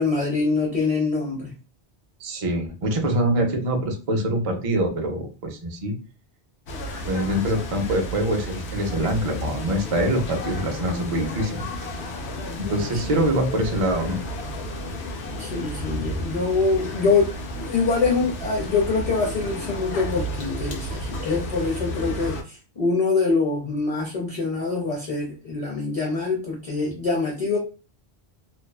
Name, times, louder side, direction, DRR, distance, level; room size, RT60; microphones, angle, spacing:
voice 1, 0.0-1.5 12.8-12.9 15.4-27.6, left 4 dB, 40° left, -2 dB, 0.6 m, -24 dB
voice 2, 2.2-5.9 7.1-11.6 12.6-14.2, right 1 dB, 40° right, 3 dB, 0.5 m, -24 dB
sound 1, 6.7-22.4, left 1 dB, 90° left, 0.9 m, -32 dB
2.5 x 2.2 x 2.2 m, 0.33 s
omnidirectional pair, 1.1 m